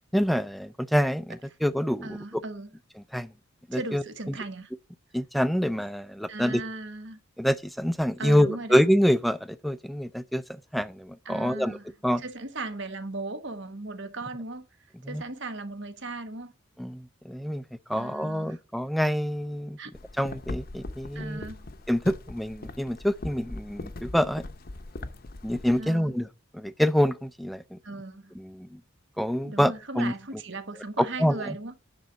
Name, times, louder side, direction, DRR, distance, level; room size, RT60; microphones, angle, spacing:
voice 1, 0.1-2.2 3.1-3.3 3.7-4.0 5.1-6.6 7.4-11.8 12.0-12.2 15.0-15.2 16.8-17.6 17.9-19.8 20.2-21.4 21.9-24.4 25.4-26.3 26.5-27.8 28.4-28.8 29.2-30.1 31.0-31.7, equal, ahead, 0.4 m, -26 dB
voice 2, 2.0-2.7 3.7-4.7 6.3-7.2 8.2-8.8 11.2-11.9 12.2-14.7 15.1-16.5 17.9-18.6 19.8-20.0 21.1-21.7 25.7-26.1 27.8-28.3 29.4-31.7, right 2 dB, 60° right, 1.2 m, -37 dB
sound 1, 19.9-25.8, left 2 dB, 45° left, 0.7 m, -40 dB
10.5 x 4.0 x 7.2 m
head